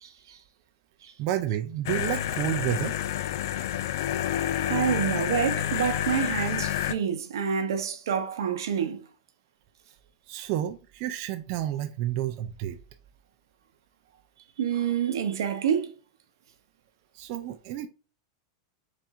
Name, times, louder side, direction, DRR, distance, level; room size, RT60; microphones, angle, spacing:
voice 1, 0.0-0.4 1.0-1.1 4.6-9.1 14.6-15.9, right 8 dB, 90° right, 0.8 m, -28 dB
voice 2, 1.2-2.9 10.3-12.8 17.1-17.9, right 12 dB, 45° right, 0.4 m, -30 dB
sound 1, 1.9-6.9, left 11 dB, 65° left, 0.4 m, -29 dB
4.2 x 2.6 x 3.5 m
supercardioid pair, 145°, 2 cm